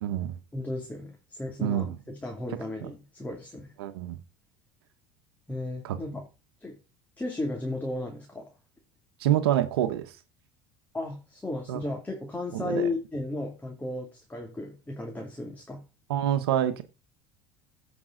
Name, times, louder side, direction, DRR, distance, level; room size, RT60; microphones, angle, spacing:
voice 1, 0.0-0.4 1.6-1.9 2.8-2.9 3.8-4.2 5.8-6.0 9.2-10.1 11.7-11.8 12.5-12.9 16.1-16.8, right 11 dB, 90° right, 1.1 m, -27 dB
voice 2, 0.5-3.7 5.5-6.3 6.6-6.8 7.2-8.5 10.9-15.8, left 2 dB, 15° left, 2.7 m, -34 dB
15.0 x 5.4 x 3.9 m
supercardioid pair, 90°, 13 cm